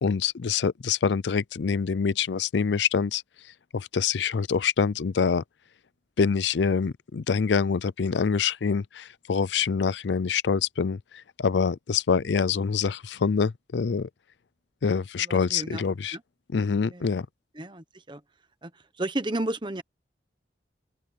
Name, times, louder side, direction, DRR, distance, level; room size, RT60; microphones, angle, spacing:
voice 1, 0.0-3.2 3.7-5.4 6.2-14.1 14.8-16.2 16.5-17.3, left 5 dB, 85° left, 0.5 m, -25 dB
voice 2, 15.2-15.8 16.1-16.2 16.9-17.1 17.5-18.2 18.6-19.8, right 1 dB, 25° right, 1.1 m, -33 dB
open air
head